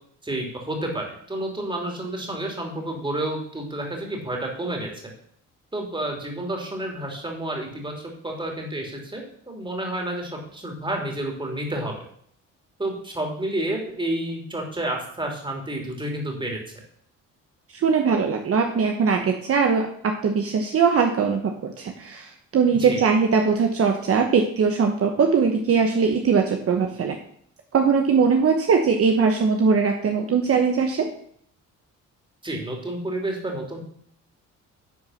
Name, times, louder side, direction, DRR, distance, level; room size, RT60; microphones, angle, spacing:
voice 1, 0.2-4.9 5.7-12.1 12.8-16.6 22.8-23.0 32.4-33.8, right 1 dB, 15° right, 0 dB, 3.0 m, -30 dB
voice 2, 17.7-27.2 27.7-31.1, right 5 dB, 50° right, 3 dB, 1.0 m, -21 dB
10.5 x 4.7 x 5.7 m, 0.64 s
cardioid pair, 90°, 30 cm